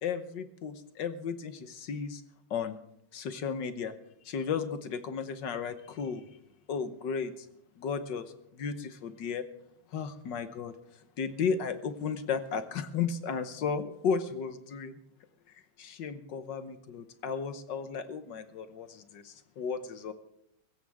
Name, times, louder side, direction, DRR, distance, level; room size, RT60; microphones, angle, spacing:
voice 1, 0.0-2.2 2.5-2.8 3.1-3.9 4.2-6.2 6.7-7.5 7.8-8.2 8.5-9.4 9.9-10.7 11.2-15.0 15.8-20.1, left 6 dB, 60° left, 11 dB, 1.6 m, -34 dB
20.5 x 16.5 x 3.6 m, 0.77 s
omnidirectional pair, 2.3 m